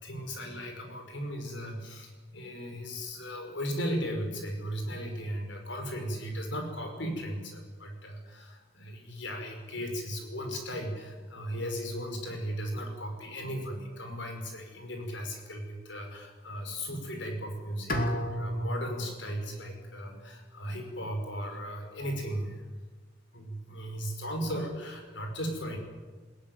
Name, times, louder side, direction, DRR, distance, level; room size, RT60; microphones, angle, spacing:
voice 1, 0.0-22.6 23.3-25.8, equal, 70° left, 4 dB, 5.3 m, -36 dB
Bowed string instrument, 17.9-20.9, equal, 50° left, 2.8 m, -35 dB
21.0 x 17.0 x 9.4 m, 1.4 s
head